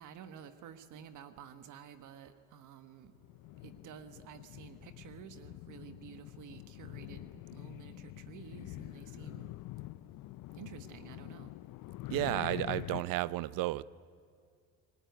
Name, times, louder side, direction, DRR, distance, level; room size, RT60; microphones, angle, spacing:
voice 1, 0.0-3.1 3.6-9.5 10.6-11.5, right 8 dB, 65° right, 10 dB, 1.4 m, -51 dB
sound 1, 3.1-13.0, left 17 dB, 75° left, 0.6 m, -46 dB
voice 2, 12.1-13.8, right 17 dB, 85° right, 19 dB, 0.7 m, -32 dB
28.5 x 19.0 x 9.3 m, 2.3 s
cardioid pair, 140°, 33 cm